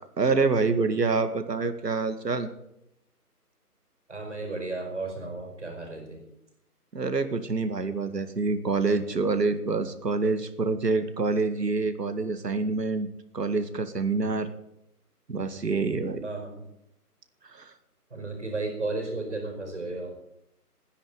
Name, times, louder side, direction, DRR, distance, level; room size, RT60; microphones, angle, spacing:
voice 1, 0.2-2.5 6.9-13.1 13.3-14.5 15.3-16.2 17.5-17.7, right 4 dB, 85° right, 9 dB, 2.1 m, -26 dB
voice 2, 4.1-6.2 16.2-16.6 18.1-20.1, right 3 dB, 45° right, 2 dB, 4.8 m, -34 dB
13.5 x 9.9 x 9.0 m, 0.82 s
hypercardioid pair, 180°, 47 cm